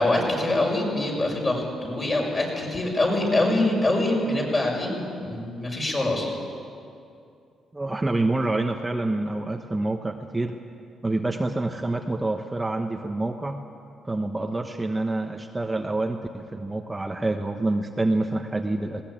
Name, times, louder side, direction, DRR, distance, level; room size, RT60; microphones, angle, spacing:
voice 1, 0.0-6.3, left 2 dB, 30° left, -1 dB, 6.4 m, -24 dB
voice 2, 7.7-10.6 11.0-13.6 14.0-19.0, right 2 dB, 15° right, 4 dB, 1.1 m, -27 dB
20.0 x 18.0 x 8.7 m, 2.5 s
cardioid pair, 90°, 0 cm